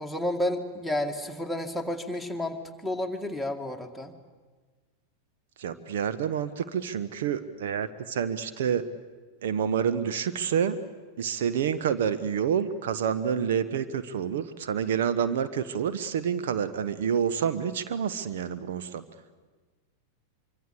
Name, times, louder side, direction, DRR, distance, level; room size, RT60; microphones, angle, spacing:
voice 1, 0.0-4.1, left 1 dB, ahead, 2 dB, 2.2 m, -31 dB
voice 2, 5.6-8.8 9.4-10.8 11.2-19.0, right 8 dB, 55° right, 11 dB, 1.1 m, -28 dB
24.5 x 24.5 x 8.3 m, 1.4 s
figure-of-eight pair, 90°, 0 cm